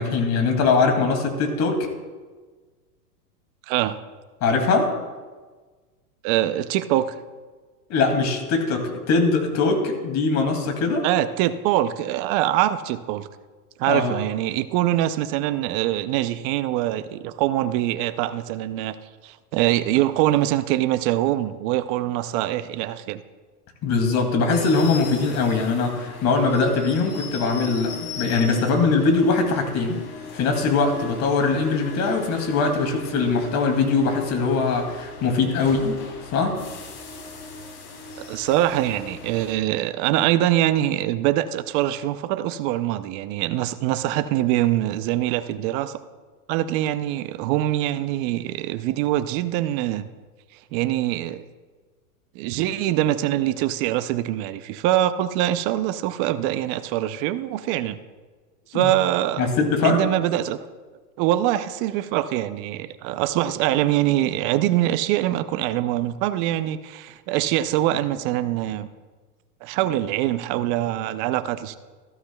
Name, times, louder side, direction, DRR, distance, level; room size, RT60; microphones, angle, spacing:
voice 1, 0.0-1.9 4.4-4.9 7.9-11.1 13.9-14.1 23.8-30.0 30.3-36.0 36.3-36.6 58.7-58.9 59.4-60.0, left 4 dB, 35° left, 3 dB, 2.4 m, -21 dB
voice 2, 3.7-4.0 6.2-7.1 11.0-13.3 13.8-18.9 19.2-23.2 38.2-46.0 46.5-50.1 50.7-51.4 52.3-58.0 58.7-59.5 59.8-60.6 61.2-68.9 69.6-71.8, right 13 dB, 35° right, 12 dB, 0.6 m, -23 dB
sound 1, 24.5-39.5, left 4 dB, 75° left, 3.3 m, -39 dB
14.5 x 13.0 x 2.3 m, 1.4 s
hypercardioid pair, 120°, 48 cm